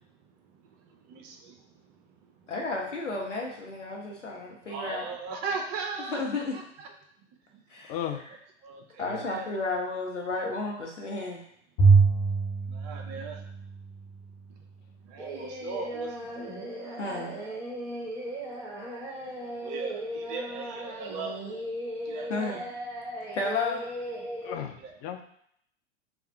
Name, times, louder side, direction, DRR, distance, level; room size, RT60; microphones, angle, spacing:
voice 1, 2.5-5.1 6.1-6.5 7.7-8.0 9.0-11.4 17.0-17.4 22.3-22.6 23.3-23.8, left 3 dB, 85° left, -1 dB, 0.9 m, -32 dB
voice 2, 4.7-6.2 6.5-6.9 8.6-9.5 12.7-13.4 15.1-16.1 19.6-21.4 22.1-22.7 24.8-24.9, right 4 dB, 30° right, 3 dB, 0.5 m, -37 dB
voice 3, 7.9-8.2 9.0-9.2 24.4-25.2, left 9 dB, 30° left, 5 dB, 0.5 m, -35 dB
Bowed string instrument, 11.8-14.2, right 4 dB, 50° left, 1.2 m, -23 dB
Singing, 15.2-24.6, equal, 10° right, 0.9 m, -37 dB
3.5 x 2.3 x 4.3 m, 0.68 s
figure-of-eight pair, 100°, 35 cm